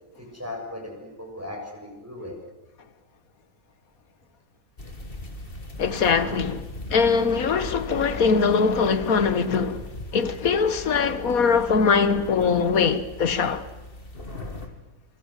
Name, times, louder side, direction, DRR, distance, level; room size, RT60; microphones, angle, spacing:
voice 1, 0.2-2.4 4.8-4.9, left 1 dB, 10° right, 7.3 m, -37 dB
sound 1, 4.8-14.7, left 1 dB, 40° left, 2.6 m, -39 dB
voice 2, 5.8-9.9 10.1-13.7, left 5 dB, 75° left, 1.8 m, -22 dB
27.0 x 24.5 x 7.5 m
omnidirectional pair, 1.5 m